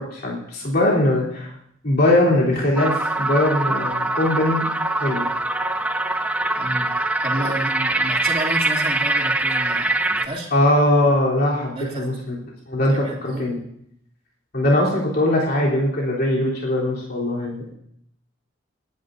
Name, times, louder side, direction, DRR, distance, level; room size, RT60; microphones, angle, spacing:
voice 1, 0.0-1.5 1.8-4.6 5.0-5.3 10.5-12.4 12.7-13.6 14.5-17.7, left 1 dB, 55° left, -5 dB, 3.7 m, -20 dB
sound 1, 2.8-10.3, right 2 dB, 5° right, 0.6 m, -23 dB
voice 2, 6.6-6.9 7.2-10.5 11.8-12.0 12.9-13.5, right 1 dB, 30° right, -4 dB, 2.9 m, -30 dB
29.5 x 10.5 x 2.7 m, 0.71 s
head